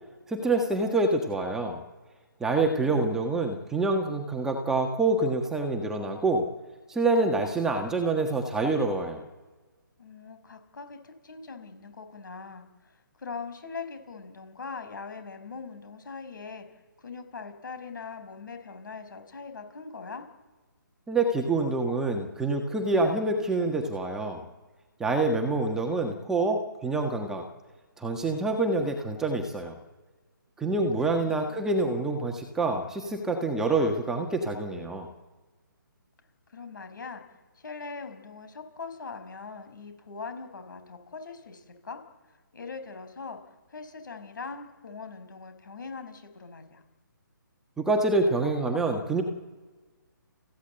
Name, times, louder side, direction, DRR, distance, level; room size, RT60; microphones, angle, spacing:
voice 1, 0.3-1.8 2.4-6.5 6.9-9.2 21.1-24.4 25.0-27.4 28.0-29.7 30.6-35.1 47.8-49.2, right 2 dB, 5° right, 3 dB, 1.5 m, -26 dB
voice 2, 2.8-3.6 10.0-16.6 17.0-20.3 31.2-31.7 36.5-37.2 37.6-42.0 42.5-43.4 43.7-46.8, left 4 dB, 65° left, 8 dB, 5.9 m, -41 dB
28.5 x 15.5 x 8.1 m, 1.3 s
hypercardioid pair, 160°, 11 cm